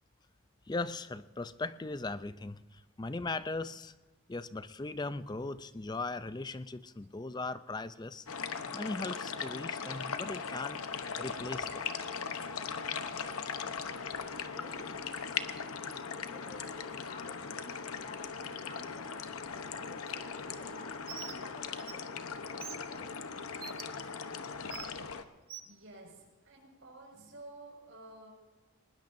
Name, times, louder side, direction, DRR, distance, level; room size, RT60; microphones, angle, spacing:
voice 1, 0.7-3.9 4.3-8.3 8.7-10.8 11.2-11.8, left 3 dB, 20° left, 14 dB, 0.4 m, -38 dB
sound 1, 8.3-25.2, left 6 dB, 80° left, 0.9 m, -39 dB
voice 2, 14.5-23.2, left 2 dB, 35° left, 2 dB, 1.5 m, -54 dB
Bird, 21.1-21.4 21.8-21.9 22.6-22.8 23.6-23.8 24.7-24.9 25.5-25.7, right 9 dB, 45° right, 1.0 m, -43 dB
voice 3, 25.4-28.3, right 2 dB, 60° right, 0 dB, 5.7 m, -52 dB
20.0 x 19.5 x 2.7 m, 1.3 s
head